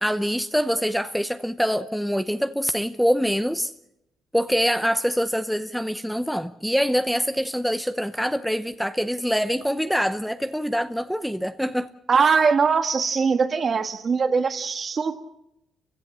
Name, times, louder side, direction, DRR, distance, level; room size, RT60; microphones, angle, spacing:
voice 1, 0.0-3.7 4.3-11.9, equal, ahead, 0.8 m, -24 dB
voice 2, 12.1-15.2, right 5 dB, 45° right, 1.7 m, -21 dB
29.0 x 16.0 x 7.3 m
cardioid pair, 90°, 0 cm